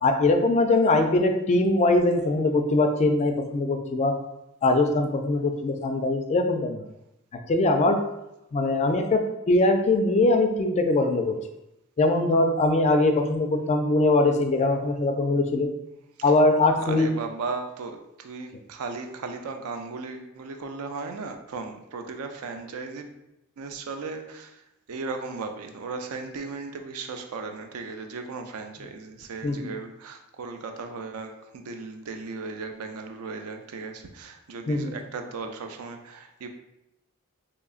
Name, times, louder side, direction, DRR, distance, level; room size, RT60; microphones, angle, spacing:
voice 1, 0.0-4.1 4.6-6.8 7.5-8.0 8.5-11.3 12.0-15.7 16.2-17.1 29.4-29.7 34.7-35.0, left 2 dB, 30° left, 6 dB, 0.3 m, -22 dB
voice 2, 16.7-23.2 23.6-24.6 24.9-36.5, right 4 dB, 90° right, 6 dB, 0.4 m, -36 dB
3.7 x 3.0 x 2.4 m, 0.88 s
head